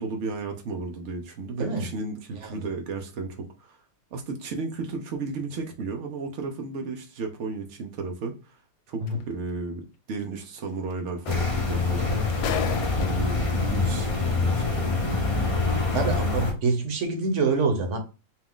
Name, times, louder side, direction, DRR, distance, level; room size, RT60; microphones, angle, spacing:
voice 1, 0.0-3.8 4.1-8.6 8.9-12.5 12.9-14.6, right 3 dB, 75° right, 0.6 m, -34 dB
sound 1, 9.1-9.2 10.9-11.0 11.3-13.5 14.4-14.5, left 9 dB, 80° left, 1.2 m, -34 dB
sound 2, 11.2-16.5, left 3 dB, 40° left, 0.4 m, -25 dB
voice 2, 15.9-18.0, right 3 dB, 50° right, 1.0 m, -26 dB
4.6 x 2.4 x 3.6 m
omnidirectional pair, 2.0 m